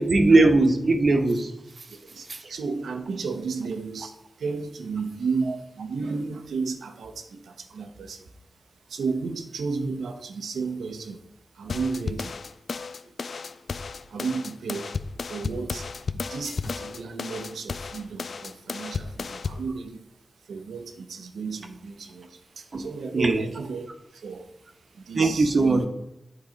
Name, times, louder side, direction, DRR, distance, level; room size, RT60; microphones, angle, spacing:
voice 1, 0.0-1.5 2.3-2.6 5.4-5.6 22.7-22.8 23.1-23.7 25.1-25.9, right 2 dB, 60° right, 5 dB, 1.0 m, -20 dB
voice 2, 1.9-25.9, right 4 dB, 90° right, 6 dB, 0.8 m, -34 dB
sound 1, 11.7-19.7, left 4 dB, 70° left, 0.3 m, -33 dB
8.4 x 3.9 x 5.1 m, 0.84 s
cardioid pair, 50°, 0 cm